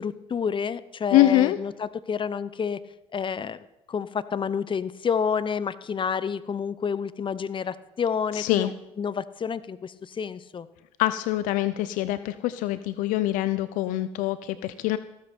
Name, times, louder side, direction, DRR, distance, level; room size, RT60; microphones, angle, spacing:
voice 1, 0.0-2.8 3.1-3.6 3.9-8.7 9.0-10.7, left 6 dB, 40° left, 16 dB, 0.9 m, -29 dB
voice 2, 1.1-1.6 8.3-8.7 11.0-15.0, left 15 dB, 75° left, 14 dB, 0.6 m, -24 dB
14.5 x 13.0 x 4.5 m, 0.92 s
hypercardioid pair, 55°, 14 cm